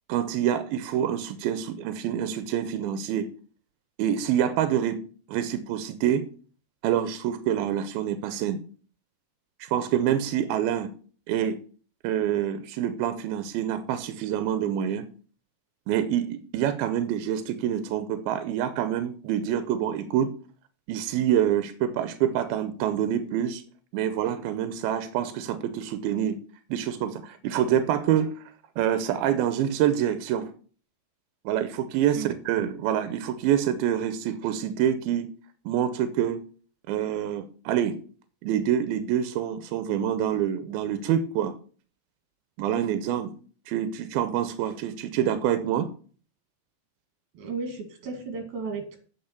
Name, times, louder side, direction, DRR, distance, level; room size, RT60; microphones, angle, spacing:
voice 1, 0.1-3.3 4.0-5.0 5.3-6.3 6.8-8.6 9.6-10.9 11.3-11.6 12.0-15.1 15.9-20.3 20.9-23.6 23.9-26.4 26.7-28.3 28.8-30.5 31.5-35.3 35.7-36.4 36.9-38.0 38.4-41.6 42.6-43.3 43.7-45.9, right 10 dB, 90° right, 10 dB, 2.6 m, -26 dB
voice 2, 47.3-49.0, right 4 dB, 60° right, 5 dB, 3.5 m, -34 dB
8.8 x 6.3 x 6.7 m, 0.43 s
omnidirectional pair, 4.3 m